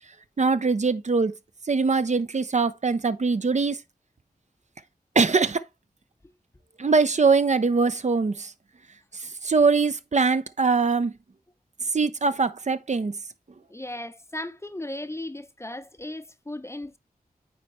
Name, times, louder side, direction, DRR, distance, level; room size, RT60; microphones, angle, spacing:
voice 1, 0.4-1.3 1.7-3.8 5.2-5.6 6.8-8.5 9.2-11.1 11.9-13.2, right 4 dB, 50° right, 0.6 m, -22 dB
voice 2, 13.7-17.0, left 1 dB, 15° left, 0.7 m, -36 dB
8.9 x 4.2 x 3.1 m
wide cardioid pair, 70°, 15 cm